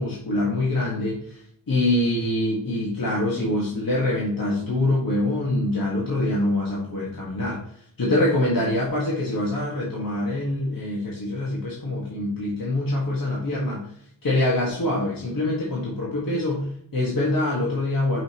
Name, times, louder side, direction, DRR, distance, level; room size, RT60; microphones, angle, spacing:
voice 1, 0.0-1.4 1.7-7.6 8.0-13.9 14.2-18.2, left 1 dB, 70° left, -5 dB, 1.8 m, -24 dB
6.3 x 5.6 x 3.0 m, 0.66 s
wide cardioid pair, 115°, 36 cm